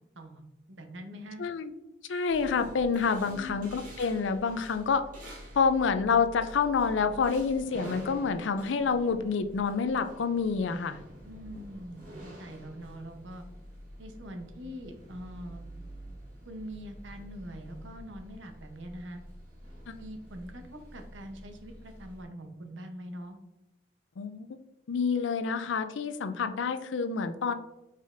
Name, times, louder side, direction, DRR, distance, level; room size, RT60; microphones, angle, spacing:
voice 1, 0.2-1.4 3.1-3.7 11.2-13.4 14.0-15.6 16.5-19.2 20.0-23.4, equal, 85° right, 5 dB, 0.8 m, -43 dB
voice 2, 1.4-1.7 2.1-5.0 5.6-11.0 19.9-20.0 24.2-24.5 24.9-27.5, left 5 dB, 85° left, 10 dB, 0.4 m, -28 dB
sound 1, 2.3-22.2, equal, 45° right, 1.4 m, -48 dB
5.1 x 4.0 x 2.5 m, 0.95 s
head